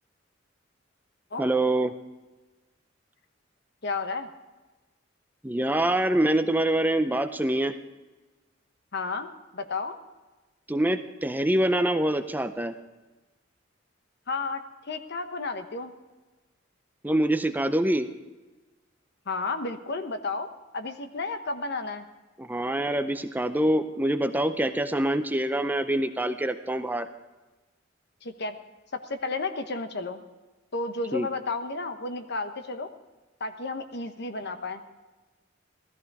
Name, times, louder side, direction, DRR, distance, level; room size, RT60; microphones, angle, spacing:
voice 1, 1.4-1.9 5.4-7.8 10.7-12.7 17.0-18.1 22.4-27.1 31.1-31.3, right 1 dB, 10° right, 9 dB, 0.5 m, -25 dB
voice 2, 3.8-4.3 8.9-10.0 14.3-15.9 19.3-22.0 28.2-28.6 28.9-30.2 30.7-32.9 33.4-34.8, left 3 dB, 60° left, 8 dB, 1.1 m, -32 dB
16.5 x 13.5 x 4.8 m, 1.2 s
head